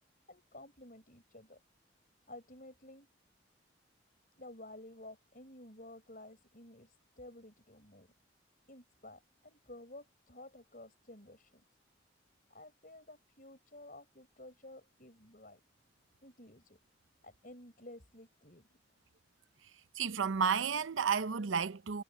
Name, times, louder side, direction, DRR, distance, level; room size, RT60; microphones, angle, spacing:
voice 1, 0.3-1.6 2.3-3.1 4.4-8.1 8.7-11.6 12.5-15.6 16.2-16.8 17.2-18.8, left 1 dB, 45° left, 6.5 m, -53 dB
voice 2, 20.0-22.0, right 6 dB, 85° right, 0.7 m, -32 dB
head